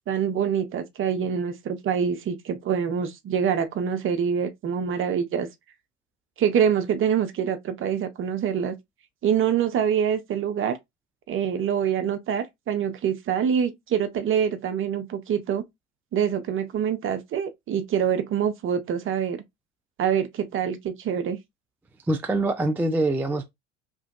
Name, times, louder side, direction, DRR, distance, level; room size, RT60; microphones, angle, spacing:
voice 1, 0.1-5.5 6.4-8.8 9.2-10.8 11.3-15.6 16.1-19.4 20.0-21.4, right 8 dB, 35° right, 0.7 m, -25 dB
voice 2, 22.1-23.5, right 2 dB, 5° right, 0.3 m, -24 dB
3.0 x 2.5 x 2.4 m
hypercardioid pair, 75°, 36 cm